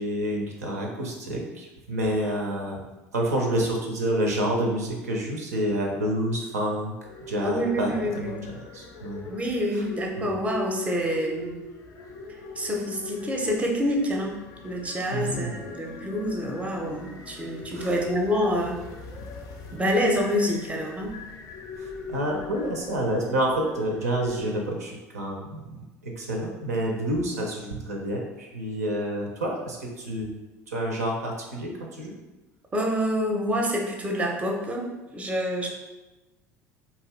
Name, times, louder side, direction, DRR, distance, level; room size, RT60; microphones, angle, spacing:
voice 1, 0.0-2.8 3.1-6.9 7.3-8.4 8.7-9.3 9.7-9.9 10.2-10.3 15.1-15.6 17.7-18.0 21.8-30.3 30.7-32.1, right 1 dB, 75° right, 0 dB, 0.5 m, -28 dB
sound 1, 7.0-24.5, left 2 dB, 45° left, 0.4 m, -40 dB
voice 2, 7.4-8.5 9.3-11.5 12.3-14.4 14.6-18.8 19.7-21.1 32.7-35.7, equal, 15° right, 1 dB, 0.5 m, -27 dB
2.6 x 2.3 x 3.1 m, 1.1 s
figure-of-eight pair, 65°, 8 cm